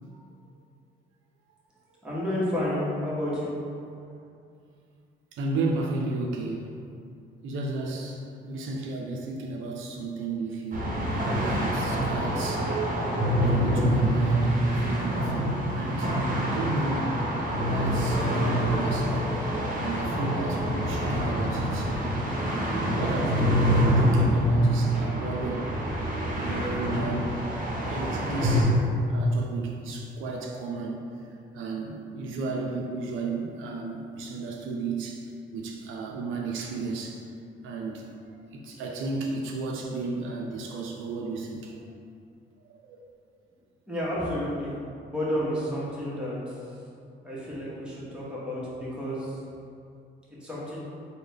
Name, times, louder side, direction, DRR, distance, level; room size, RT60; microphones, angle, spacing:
voice 1, 2.0-3.6 43.9-46.6 47.2-49.4 50.4-50.8, equal, 5° right, -8 dB, 1.0 m, -31 dB
voice 2, 5.3-6.7 7.4-11.1 11.4-12.8 13.5-16.1 16.4-17.1 17.6-19.3 19.8-22.0 22.5-25.7 26.3-27.3 27.8-28.8 29.1-31.0 31.5-35.3 35.5-37.2 37.6-38.1 38.5-41.8 42.6-43.0, right 3 dB, 85° right, 0 dB, 0.4 m, -33 dB
sound 1, 10.7-28.6, equal, 45° right, 0.8 m, -26 dB
3.6 x 2.2 x 3.3 m, 2.4 s
cardioid pair, 90°, 20 cm